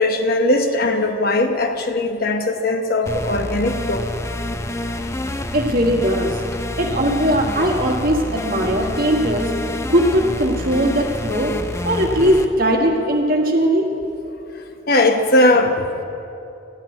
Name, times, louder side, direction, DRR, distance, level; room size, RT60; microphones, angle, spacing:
voice 1, 0.0-4.1 14.5-15.9, left 2 dB, 50° left, 5 dB, 0.9 m, -19 dB
sound 1, 3.1-12.5, left 1 dB, 15° left, 0.5 m, -27 dB
voice 2, 5.5-6.4 6.8-9.5 9.9-11.5 11.8-13.9, equal, 50° right, 1 dB, 1.6 m, -19 dB
14.0 x 6.2 x 9.7 m, 2.7 s
head